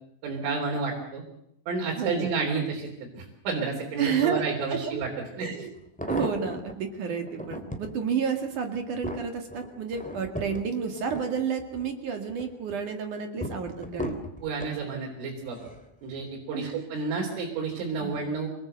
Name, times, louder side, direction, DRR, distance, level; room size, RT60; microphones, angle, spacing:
voice 1, 0.2-1.2 1.7-5.1 5.4-5.5 14.4-15.6 16.0-18.5, right 4 dB, 80° right, -1 dB, 6.2 m, -31 dB
voice 2, 2.0-2.3 4.0-4.4 4.7-5.0 5.4-5.7 6.1-14.2 16.5-17.0 18.0-18.2, right 6 dB, 50° right, 5 dB, 2.8 m, -30 dB
sound 1, 5.0-5.1 5.7-6.8 7.3-7.9 8.5-11.9 12.3-12.8 13.4-14.8 15.5-15.9 16.2-16.3, equal, 5° left, 1.4 m, -36 dB
27.5 x 19.0 x 8.0 m, 0.78 s
omnidirectional pair, 5.6 m